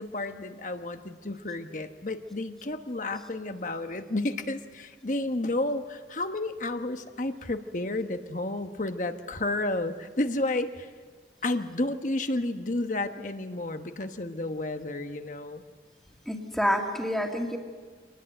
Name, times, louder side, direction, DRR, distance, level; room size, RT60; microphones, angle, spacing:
voice 1, 0.0-10.9 11.4-15.6, left 2 dB, 45° left, 8 dB, 1.1 m, -31 dB
voice 2, 16.3-17.6, equal, ahead, 1 dB, 2.2 m, -28 dB
25.5 x 19.0 x 7.8 m, 1.5 s
head